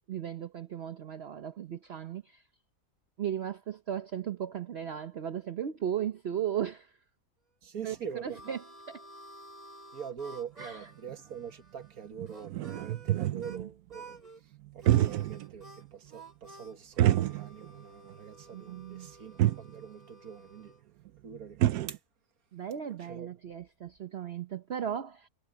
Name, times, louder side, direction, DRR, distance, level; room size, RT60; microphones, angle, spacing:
voice 1, 0.1-2.4 3.2-6.9 7.8-8.0 8.2-8.6 8.9-9.0 10.6-10.9 13.1-13.7 18.5-19.1 22.5-25.3, right 9 dB, 50° right, 0.9 m, -36 dB
voice 2, 7.6-8.6 9.9-20.7 21.2-21.6 21.9-22.0 23.0-23.3, right 7 dB, 70° right, 2.0 m, -44 dB
Harmonica, 7.8-13.6 13.9-14.4 14.8-20.8, right 2 dB, 25° right, 3.7 m, -52 dB
sound 1, 10.6-10.7 11.1-11.2 11.8-11.9 12.2-13.6 14.7-15.5 15.8-15.9 17.0-17.8 18.1-18.2 19.1-19.2 19.4-19.7 21.1-21.2 21.3-22.0, right 13 dB, 90° right, 1.2 m, -27 dB
omnidirectional pair, 1.6 m